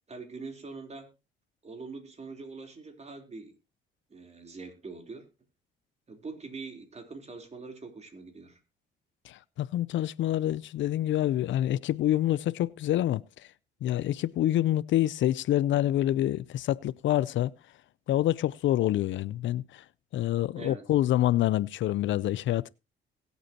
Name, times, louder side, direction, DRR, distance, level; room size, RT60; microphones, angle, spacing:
voice 1, 0.1-1.1 1.6-3.6 4.1-5.3 6.1-8.6 20.6-20.8, right 4 dB, 35° right, 3.6 m, -43 dB
voice 2, 9.2-13.5 13.8-17.5 18.1-19.8 20.1-22.7, left 13 dB, 75° left, 0.5 m, -27 dB
21.5 x 8.2 x 2.9 m
cardioid pair, 90°, 20 cm